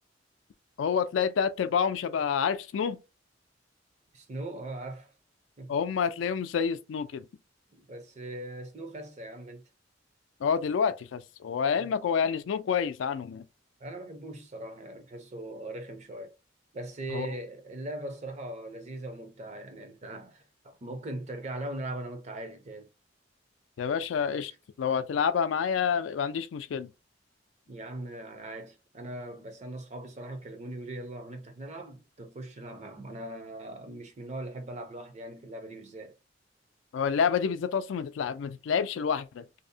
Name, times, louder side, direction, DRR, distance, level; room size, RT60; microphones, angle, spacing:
voice 1, 0.8-3.0 5.7-7.3 10.4-13.4 17.1-17.3 23.8-24.5 24.8-26.9 36.9-39.4, left 7 dB, 85° left, 0.3 m, -28 dB
voice 2, 4.1-5.1 5.6-5.7 7.7-9.6 11.8-12.0 13.8-16.3 16.7-22.9 27.7-36.1, right 1 dB, 40° right, 0.6 m, -40 dB
2.7 x 2.0 x 2.6 m
head